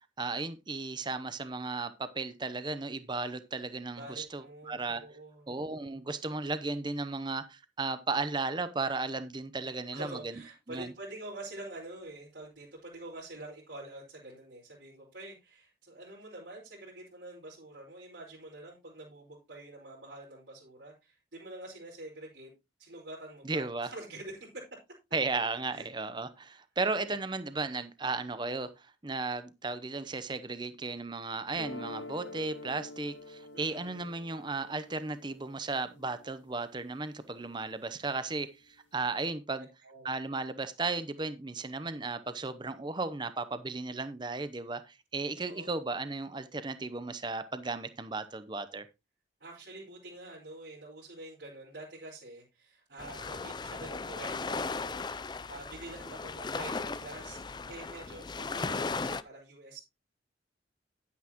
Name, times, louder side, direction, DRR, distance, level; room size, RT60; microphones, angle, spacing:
voice 1, 0.2-5.0 5.5-10.4 10.7-10.9 23.4-23.9 25.1-39.7 40.0-48.9, right 3 dB, 25° right, 0.7 m, -35 dB
voice 2, 4.0-5.5 9.7-22.5 22.8-24.8 25.7-25.8 27.1-27.2 33.5-34.0 39.8-40.1 45.5-45.8 49.4-55.0 55.5-59.8, right 2 dB, 75° right, 5.1 m, -46 dB
sound 1, 31.5-37.6, left 2 dB, 85° left, 2.0 m, -48 dB
sound 2, 53.0-59.2, left 4 dB, 25° left, 0.4 m, -37 dB
10.5 x 9.5 x 3.0 m
head